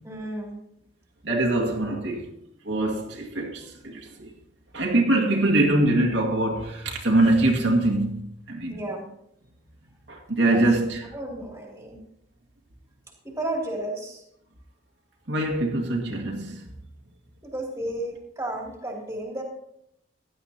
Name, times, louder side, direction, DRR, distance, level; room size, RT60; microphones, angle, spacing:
voice 1, 0.0-0.6 8.7-9.1 10.5-10.7 11.1-12.0 13.2-14.2 17.4-19.4, right 1 dB, 15° right, 2.9 m, -33 dB
voice 2, 1.2-2.2 2.6-4.3 4.7-8.8 10.1-11.0 15.3-16.6, right 2 dB, 70° right, 2.2 m, -23 dB
16.0 x 11.0 x 2.9 m
head